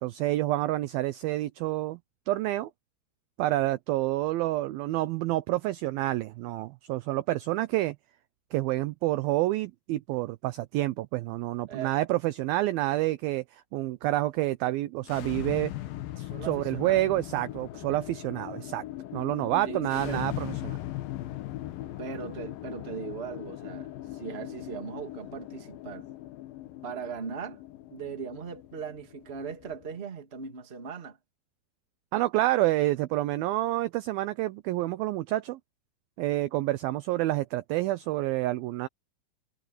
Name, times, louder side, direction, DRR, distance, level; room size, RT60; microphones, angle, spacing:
voice 1, 0.0-2.0 2.3-2.7 3.4-8.0 8.5-15.7 16.2-18.8 19.1-20.8 32.1-35.6 36.2-38.9, right 16 dB, 85° right, 2.1 m, -28 dB
sound 1, 15.0-30.0, left 15 dB, 70° left, 2.4 m, -39 dB
voice 2, 16.3-17.0 19.6-20.3 22.0-26.0 26.8-27.6 27.9-31.2, right 6 dB, 25° right, 1.4 m, -39 dB
omnidirectional pair, 5.0 m